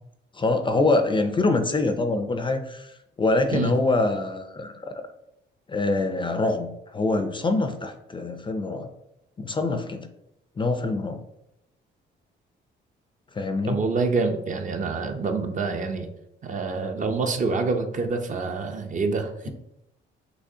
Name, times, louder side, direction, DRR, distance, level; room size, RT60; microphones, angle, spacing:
voice 1, 0.3-4.7 5.7-8.9 9.4-10.1 10.6-11.2 13.3-13.8, left 2 dB, 25° left, 7 dB, 0.4 m, -25 dB
voice 2, 13.6-16.1 16.4-19.5, right 4 dB, 40° right, 5 dB, 0.6 m, -26 dB
6.1 x 2.9 x 2.7 m, 0.85 s
cardioid pair, 90°, 20 cm